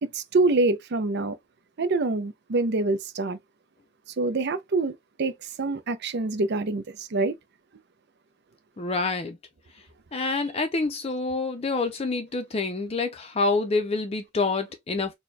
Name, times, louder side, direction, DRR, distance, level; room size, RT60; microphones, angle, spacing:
voice 1, 0.0-1.4 1.8-3.4 4.2-5.3 5.6-7.3, right 3 dB, 55° right, 0.6 m, -25 dB
voice 2, 8.8-9.4 10.1-15.1, left 3 dB, 30° left, 0.5 m, -27 dB
4.3 x 2.2 x 3.2 m
head